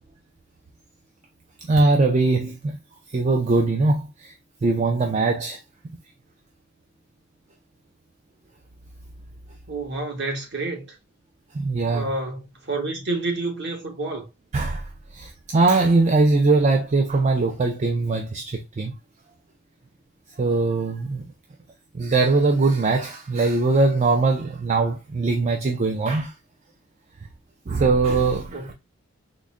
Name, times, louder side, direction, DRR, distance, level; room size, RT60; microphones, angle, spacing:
voice 1, 1.7-2.8 3.1-4.3 4.6-5.6 11.5-12.1 14.5-14.9 15.1-18.9 20.4-21.2 21.9-26.3 27.7-28.6, right 3 dB, 30° right, 0.3 m, -21 dB
voice 2, 9.7-10.9 11.8-14.3 28.5-28.7, right 2 dB, 50° right, 1.1 m, -29 dB
3.8 x 2.1 x 3.5 m
head